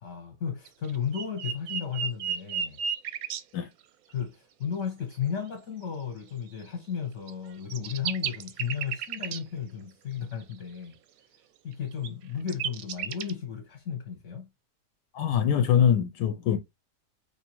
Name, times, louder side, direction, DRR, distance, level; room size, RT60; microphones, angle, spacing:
voice 1, 0.0-2.8 4.1-11.0 11.6-14.5, left 7 dB, 50° left, 1.1 m, -34 dB
sound 1, 0.7-3.4 7.3-7.4 7.7-9.4 11.9-12.1 12.5-13.3, right 8 dB, 70° right, 0.9 m, -32 dB
voice 2, 15.1-16.6, left 8 dB, 80° left, 1.2 m, -23 dB
4.9 x 2.7 x 2.9 m
omnidirectional pair, 1.8 m